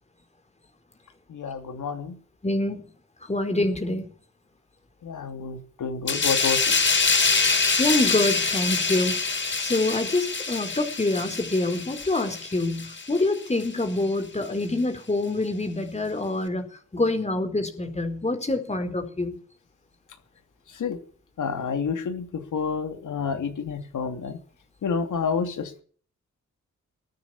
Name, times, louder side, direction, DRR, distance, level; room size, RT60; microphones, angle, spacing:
voice 1, 1.3-2.2 5.0-6.8 20.7-21.0 21.4-24.4 24.8-25.8, left 5 dB, 85° left, 6 dB, 2.9 m, -29 dB
voice 2, 2.4-2.8 3.3-4.1 7.8-9.1 9.6-16.6 16.9-19.3, left 2 dB, 20° left, 6 dB, 4.7 m, -26 dB
sound 1, 6.1-13.2 13.6-13.8, left 4 dB, 35° left, 6.9 m, -25 dB
20.5 x 9.6 x 7.3 m, 0.43 s
cardioid pair, 85°, 30 cm